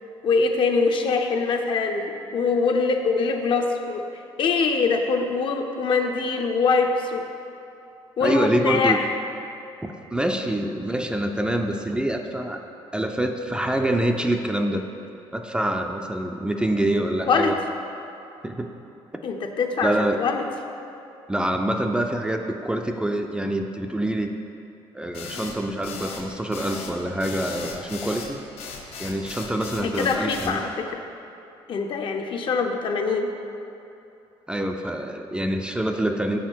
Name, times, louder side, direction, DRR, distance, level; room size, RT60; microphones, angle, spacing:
voice 1, 0.2-7.2 8.2-9.1 17.3-17.6 19.2-20.4 29.8-31.0 31.7-33.3, left 4 dB, 55° left, 4 dB, 0.6 m, -23 dB
voice 2, 8.2-9.0 9.8-12.6 12.9-14.8 15.3-17.5 18.4-18.7 19.8-20.2 21.3-24.3 24.9-28.4 29.0-30.6 34.5-36.4, right 1 dB, 10° right, 4 dB, 0.4 m, -25 dB
sound 1, 25.1-30.6, left 5 dB, 80° left, 0.9 m, -37 dB
7.2 x 5.0 x 4.5 m, 2.9 s
cardioid pair, 100°, 10 cm